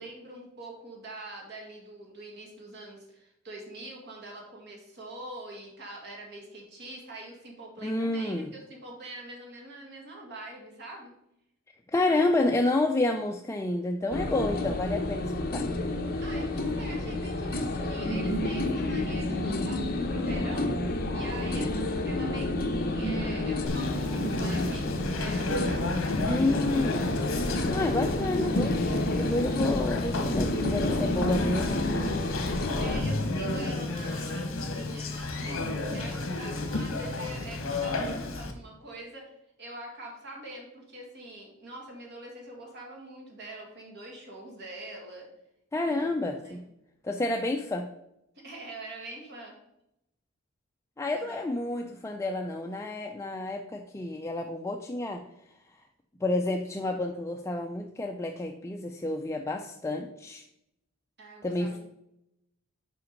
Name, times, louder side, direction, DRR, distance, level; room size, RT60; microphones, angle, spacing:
voice 1, 0.0-11.1 16.2-27.0 32.8-39.3 39.6-45.3 46.0-46.1 46.4-46.6 48.4-49.6 51.1-52.0 61.2-61.8, right 2 dB, 55° right, 0 dB, 1.8 m, -44 dB
voice 2, 7.8-8.5 11.9-15.7 26.3-27.1 27.7-28.8 29.2-31.9 45.7-46.6 47.0-47.9 51.0-55.2 56.2-60.4 61.4-61.8, left 2 dB, 15° left, 3 dB, 0.4 m, -29 dB
sound 1, 14.1-33.0, left 1 dB, 45° left, 0.8 m, -30 dB
Conversation, 23.7-38.5, left 2 dB, 70° left, 1.1 m, -32 dB
5.8 x 5.1 x 5.1 m, 0.82 s
head